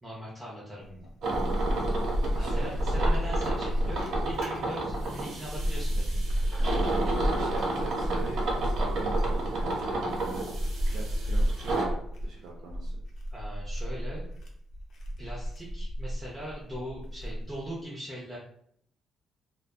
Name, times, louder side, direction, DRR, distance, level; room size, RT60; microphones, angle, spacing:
voice 1, 0.0-1.1 2.4-6.4 13.3-14.3 15.2-18.4, equal, 5° right, -6 dB, 0.5 m, -40 dB
sound 1, 0.8-17.7, equal, 55° left, 0.5 m, -31 dB
sound 2, 1.2-11.8, right 2 dB, 65° right, 1.1 m, -32 dB
voice 2, 2.3-3.1 6.6-6.9 7.3-12.0 12.2-12.9, right 3 dB, 85° right, -3 dB, 0.5 m, -42 dB
2.6 x 2.2 x 2.2 m, 0.68 s
cardioid pair, 170°, 0 cm